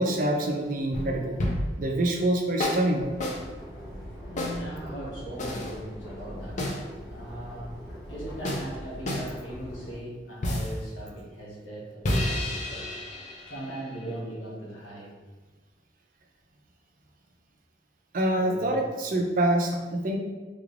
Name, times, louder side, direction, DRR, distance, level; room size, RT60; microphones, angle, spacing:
voice 1, 0.0-1.4 1.8-3.0 18.1-20.2, right 1 dB, 45° right, 2 dB, 0.4 m, -26 dB
sound 1, 0.9-1.8 2.6-2.9 3.2-3.4 4.4-4.6 5.4-5.7 6.6-6.8 8.4-8.7 9.1-9.3 10.4-10.8 12.0-14.2, left 1 dB, 40° left, 0.5 m, -30 dB
sound 2, 2.9-10.0, equal, 70° left, 1.4 m, -41 dB
voice 2, 4.3-7.8 8.1-13.0 13.4-15.2 18.4-18.8, right 1 dB, 85° left, -5 dB, 1.2 m, -39 dB
3.6 x 3.2 x 2.5 m, 1.3 s
head